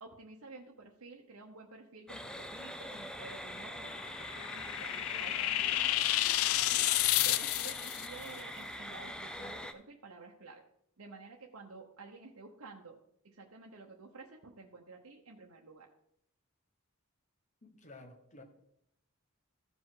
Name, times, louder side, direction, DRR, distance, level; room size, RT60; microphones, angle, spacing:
voice 1, 0.0-6.0 6.6-6.9 7.2-10.6 11.0-13.0 13.2-15.9, right 3 dB, 75° right, -1 dB, 1.0 m, -51 dB
sound 1, 2.1-9.7, equal, 5° left, 0.5 m, -44 dB
sound 2, 3.9-8.1, left 15 dB, 70° left, 0.3 m, -30 dB
voice 2, 17.6-18.4, left 2 dB, 35° left, 5 dB, 1.3 m, -53 dB
15.0 x 5.1 x 3.8 m, 0.75 s
head